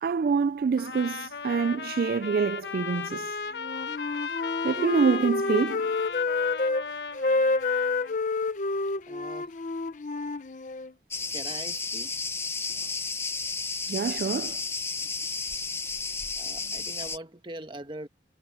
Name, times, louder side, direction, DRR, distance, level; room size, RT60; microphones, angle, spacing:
voice 1, 0.0-3.4 4.6-5.9 13.9-14.6, right 5 dB, 55° right, 0.3 m, -26 dB
Trumpet, 0.8-8.2, left 5 dB, 75° left, 1.4 m, -36 dB
Wind instrument woodwind instrument, 3.6-6.8 7.1-10.9, left 3 dB, 45° left, 0.7 m, -28 dB
voice 2, 9.1-9.5 11.3-12.1 16.4-18.1, right 1 dB, 30° right, 1.3 m, -41 dB
Cricket, 11.1-17.2, left 4 dB, 15° left, 0.9 m, -32 dB
head